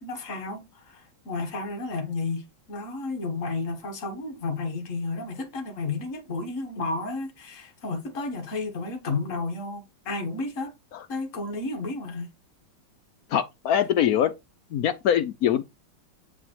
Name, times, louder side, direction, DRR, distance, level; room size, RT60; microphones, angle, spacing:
voice 1, 0.0-10.7 11.1-12.3, left 3 dB, 45° left, 1.6 m, -32 dB
voice 2, 13.3-14.3 14.7-15.7, left 9 dB, 70° left, 0.9 m, -23 dB
7.0 x 3.4 x 4.5 m
omnidirectional pair, 2.1 m